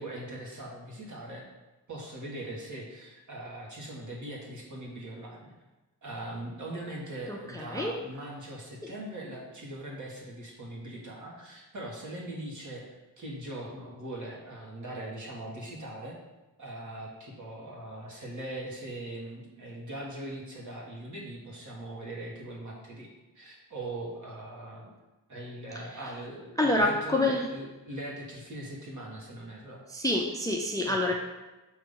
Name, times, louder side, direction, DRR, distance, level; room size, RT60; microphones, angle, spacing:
voice 1, 0.0-1.4 1.9-5.5 6.0-12.9 13.2-16.1 16.6-24.9 25.3-29.8 30.8-31.1, right 1 dB, 50° right, -3 dB, 1.5 m, -41 dB
voice 2, 7.3-8.0 25.9-26.0 26.6-27.5 29.9-31.1, left 2 dB, 10° left, 0 dB, 0.4 m, -27 dB
6.6 x 2.9 x 5.4 m, 1.1 s
wide cardioid pair, 145°, 39 cm